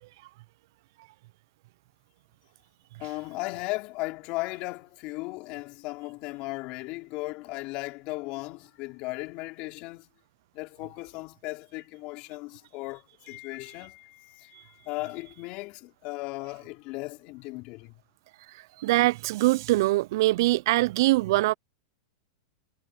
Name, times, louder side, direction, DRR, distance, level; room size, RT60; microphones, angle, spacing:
voice 1, 3.0-10.1 10.5-17.9, left 23 dB, 40° left, 4.5 m, -36 dB
voice 2, 18.8-21.5, right 19 dB, 60° right, 0.3 m, -23 dB
supercardioid pair, 145°, 2 cm